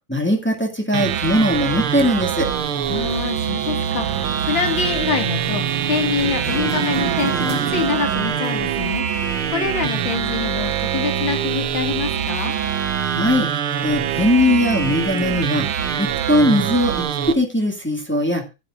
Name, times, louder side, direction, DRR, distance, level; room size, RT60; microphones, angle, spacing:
voice 1, 0.1-2.5 13.0-13.5 13.8-15.7 16.0-16.9 17.3-18.4, left 1 dB, 5° left, 0 dB, 1.9 m, -19 dB
sound 1, 0.9-17.3, right 8 dB, 75° right, 2.0 m, -24 dB
sound 2, 2.2-10.2, right 8 dB, 60° right, 2.0 m, -32 dB
voice 2, 2.9-12.5, left 6 dB, 60° left, 6 dB, 2.7 m, -25 dB
15.0 x 10.5 x 2.5 m, 0.25 s
omnidirectional pair, 2.4 m